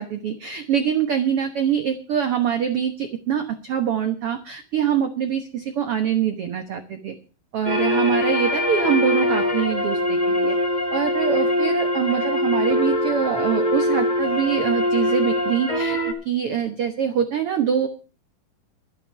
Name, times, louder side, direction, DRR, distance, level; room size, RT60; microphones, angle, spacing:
voice 1, 0.0-7.1 7.5-10.6 10.9-17.9, right 8 dB, 80° right, 7 dB, 1.3 m, -24 dB
sound 1, 7.6-16.1, left 1 dB, 20° left, 1.4 m, -22 dB
12.5 x 10.5 x 5.8 m, 0.38 s
omnidirectional pair, 4.3 m